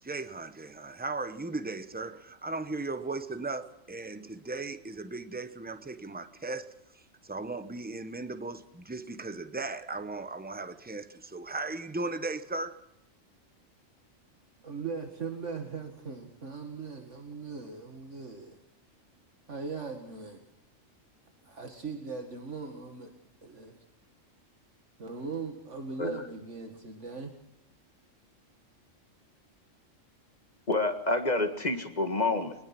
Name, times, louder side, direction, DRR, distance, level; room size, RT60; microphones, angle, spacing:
voice 1, 0.0-12.8, right 3 dB, 10° right, 0.9 m, -37 dB
voice 2, 14.6-18.6 19.5-20.4 21.5-23.1 23.4-23.8 25.0-27.3, right 4 dB, 65° right, 2.2 m, -39 dB
voice 3, 30.7-32.6, left 2 dB, 35° left, 1.9 m, -28 dB
22.5 x 20.0 x 6.0 m
omnidirectional pair, 1.3 m